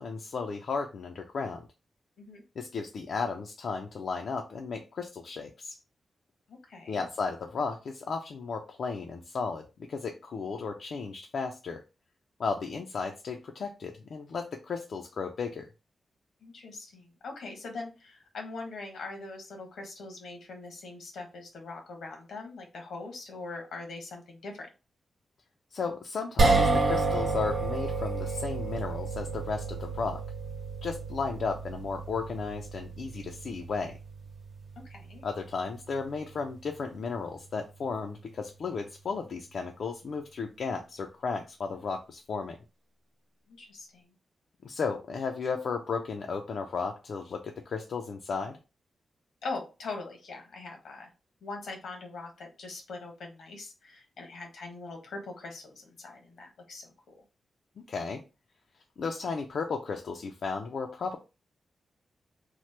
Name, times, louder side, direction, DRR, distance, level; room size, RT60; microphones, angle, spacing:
voice 1, 0.0-1.7 2.6-5.8 6.9-11.8 12.4-15.7 25.7-30.2 30.8-34.0 35.2-42.6 44.6-48.6 57.9-58.2 59.0-61.2, left 5 dB, 70° left, 3 dB, 0.3 m, -34 dB
voice 2, 6.5-7.0 16.4-24.7 34.8-35.3 43.5-44.1 49.4-51.1 51.4-57.1, left 3 dB, 90° left, 3 dB, 0.9 m, -42 dB
sound 1, 26.4-38.7, right 3 dB, 70° right, 0.9 m, -31 dB
2.9 x 2.0 x 3.1 m, 0.30 s
cardioid pair, 75°, 0 cm